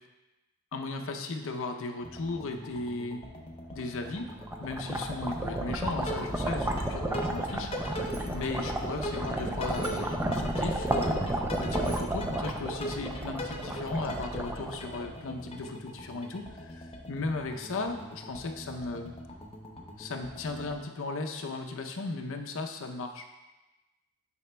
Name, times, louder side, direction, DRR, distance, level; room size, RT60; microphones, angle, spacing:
voice 1, 0.7-3.2 3.7-4.3 4.6-19.1 20.0-23.3, left 3 dB, 65° left, 4 dB, 0.6 m, -36 dB
sound 1, 2.0-20.7, left 1 dB, 25° left, 0.7 m, -41 dB
sound 2, 4.2-15.3, right 1 dB, 10° right, 0.4 m, -32 dB
Bicycle bell, 7.8-8.5 9.7-10.2 11.5-12.3, right 2 dB, 70° right, 1.6 m, -51 dB
9.6 x 5.0 x 2.2 m, 1.1 s
head